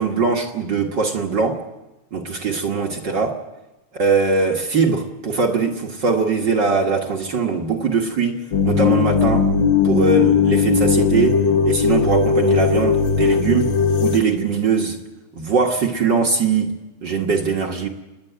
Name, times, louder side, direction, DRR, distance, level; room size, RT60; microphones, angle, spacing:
voice 1, 0.0-1.6 2.1-3.4 3.9-9.5 9.8-11.4 11.6-13.7 14.0-15.0 15.3-17.9, right 5 dB, 50° right, 2 dB, 1.6 m, -21 dB
sound 1, 8.5-14.2, left 5 dB, 55° left, 1.5 m, -18 dB
29.5 x 10.5 x 9.2 m, 1.1 s
omnidirectional pair, 3.5 m